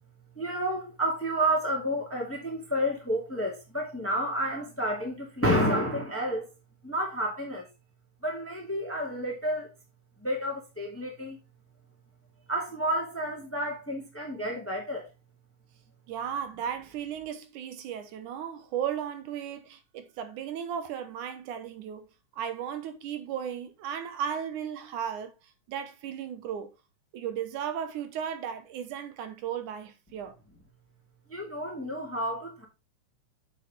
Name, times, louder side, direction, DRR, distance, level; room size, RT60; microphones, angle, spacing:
voice 1, 0.3-6.5 6.8-7.7 8.2-9.7 10.2-11.4 12.5-15.1 31.3-32.6, equal, 5° left, 1.7 m, -30 dB
voice 2, 16.1-25.3 25.7-26.7 27.1-30.4, right 8 dB, 80° right, 2.6 m, -35 dB
7.2 x 7.2 x 3.7 m
omnidirectional pair, 3.6 m